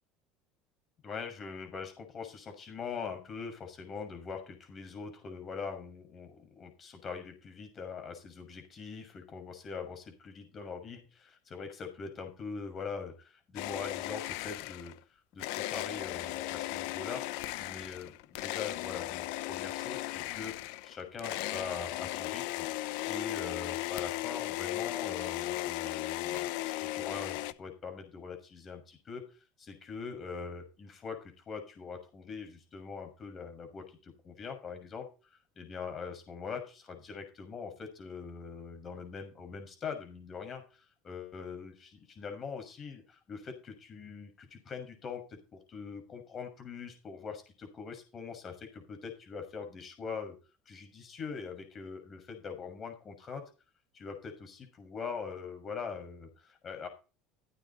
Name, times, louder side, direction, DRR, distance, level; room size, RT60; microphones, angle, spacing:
voice 1, 1.0-14.9 15.3-17.2 17.6-20.5 20.8-22.7 23.1-29.2 29.6-35.1 35.6-50.4 50.7-53.4 53.9-56.9, left 5 dB, 35° left, 6 dB, 6.2 m, -42 dB
sound 1, 13.6-15.0 15.4-27.5, left 17 dB, 75° left, 0.8 m, -36 dB
16.0 x 9.1 x 4.3 m, 0.33 s
supercardioid pair, 110°, 0 cm